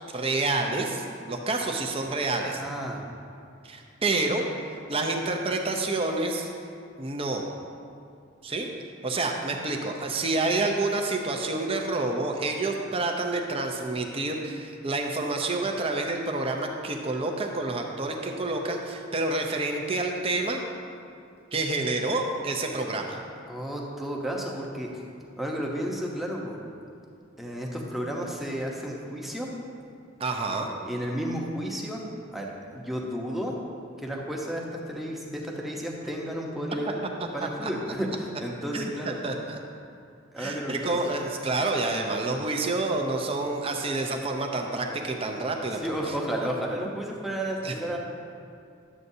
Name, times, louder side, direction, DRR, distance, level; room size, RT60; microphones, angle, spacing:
voice 1, 0.1-2.6 3.6-4.4 4.9-6.5 7.0-7.5 8.4-8.7 9.0-20.6 21.5-23.2 30.2-30.7 37.4-37.7 38.7-39.6 40.4-46.5 47.6-47.8, right 2 dB, 30° right, 2 dB, 0.6 m, -28 dB
voice 2, 2.6-3.0 23.5-25.0 25.4-26.6 27.4-29.5 30.8-32.0 32.3-33.5 34.0-37.0 37.3-39.2 40.3-41.1 45.8-48.0, equal, ahead, -2 dB, 0.8 m, -32 dB
11.0 x 7.7 x 2.7 m, 2.4 s
head